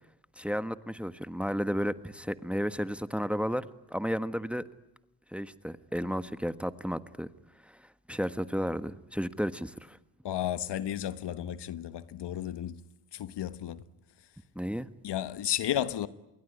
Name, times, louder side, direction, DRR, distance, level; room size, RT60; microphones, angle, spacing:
voice 1, 0.4-4.6 5.3-7.3 7.7-7.8 8.1-10.0 14.5-14.9, equal, ahead, 1.4 m, -33 dB
voice 2, 10.2-12.8 13.1-13.8 15.0-16.1, left 11 dB, 60° left, 1.4 m, -33 dB
27.5 x 22.5 x 9.6 m
hypercardioid pair, 60°, 47 cm